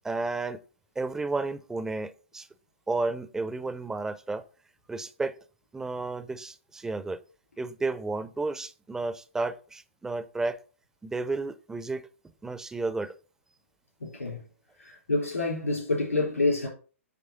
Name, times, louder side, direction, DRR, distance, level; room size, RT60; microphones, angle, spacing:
voice 1, 0.0-0.6 1.0-2.5 2.9-4.4 4.9-5.3 5.7-7.2 7.6-10.6 11.0-12.0 12.4-13.1, right 3 dB, 5° right, 0.5 m, -32 dB
voice 2, 14.0-14.5 14.8-16.7, left 3 dB, 80° left, 3.8 m, -28 dB
9.5 x 3.3 x 5.6 m
figure-of-eight pair, 115°, 8 cm